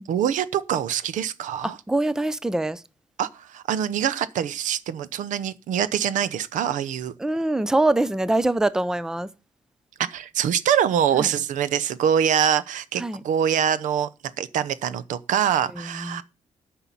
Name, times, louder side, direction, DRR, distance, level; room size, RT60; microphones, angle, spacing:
voice 1, 0.0-1.8 3.2-7.1 10.1-14.1 14.4-16.2, right 9 dB, 85° right, 0.8 m, -24 dB
voice 2, 1.9-2.8 7.2-9.3 11.1-11.3 13.0-13.2 15.8-16.2, right 2 dB, 5° right, 0.5 m, -24 dB
10.0 x 5.7 x 8.5 m
cardioid pair, 140°, 13 cm